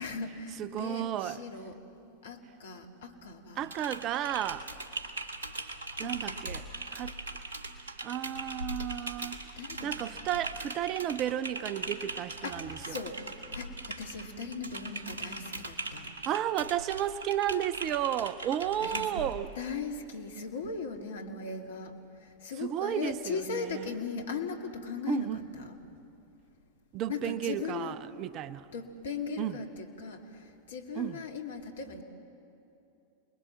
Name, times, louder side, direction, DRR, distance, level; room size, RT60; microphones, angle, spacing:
voice 1, 0.0-1.8 2.2-3.7 6.0-6.4 9.6-10.2 12.4-16.1 18.8-19.1 19.6-25.3 25.5-25.8 27.1-28.0 28.7-32.0, left 5 dB, 65° left, 2.3 m, -39 dB
voice 2, 0.6-1.4 3.6-4.7 6.0-7.1 8.0-9.4 9.8-13.0 16.2-19.5 22.6-23.9 25.1-25.4 26.9-28.7 29.4-29.6 30.9-31.2, right 11 dB, 35° right, 0.6 m, -33 dB
Typing, 3.6-19.3, right 2 dB, 70° right, 1.8 m, -40 dB
28.5 x 21.5 x 7.4 m
figure-of-eight pair, 90°, 0 cm